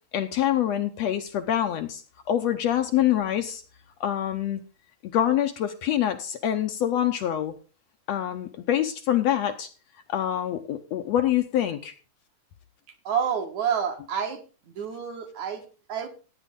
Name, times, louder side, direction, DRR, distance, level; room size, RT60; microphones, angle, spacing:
voice 1, 0.1-2.0 2.3-3.6 4.0-4.6 5.1-7.5 8.1-9.7 10.1-11.9, left 11 dB, 70° left, 7 dB, 1.8 m, -25 dB
voice 2, 13.0-14.4 14.8-16.1, right 7 dB, 65° right, 5 dB, 3.0 m, -29 dB
15.0 x 9.3 x 3.8 m, 0.35 s
omnidirectional pair, 3.6 m